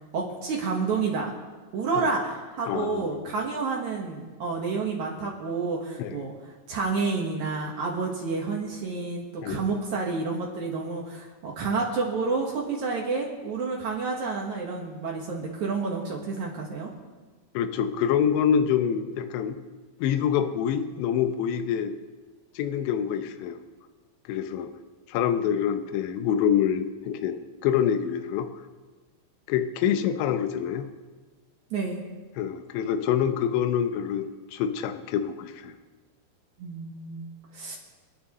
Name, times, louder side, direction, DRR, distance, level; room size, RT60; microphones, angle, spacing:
voice 1, 0.1-1.3 1.7-6.3 6.7-16.9 31.7-32.0 36.6-37.3 37.5-37.8, right 4 dB, 65° right, -2 dB, 2.0 m, -29 dB
voice 2, 2.7-3.1 6.0-6.2 9.4-9.6 17.5-19.6 20.0-21.9 22.6-23.6 24.3-24.7 25.1-28.5 29.5-30.9 32.4-35.8, left 8 dB, 80° left, 8 dB, 3.0 m, -26 dB
28.0 x 10.0 x 3.1 m, 1.3 s
omnidirectional pair, 5.3 m